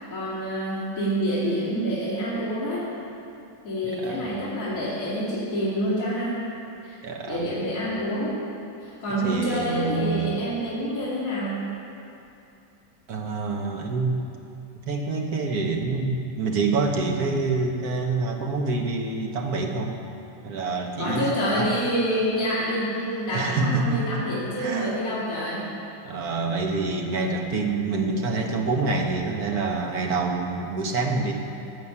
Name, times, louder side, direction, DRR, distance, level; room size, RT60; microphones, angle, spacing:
voice 1, 0.1-2.9 3.6-6.4 6.8-7.0 7.3-8.4 8.8-11.7 21.0-25.7, equal, 50° left, -10 dB, 2.8 m, -27 dB
voice 2, 3.8-4.4 7.0-7.5 9.2-10.4 13.1-14.2 14.9-20.0 20.4-21.3 21.6-21.7 23.3-24.1 24.6-25.0 26.0-31.3, right 3 dB, 55° right, 1 dB, 1.6 m, -26 dB
14.5 x 5.2 x 8.6 m, 2.7 s
omnidirectional pair, 2.0 m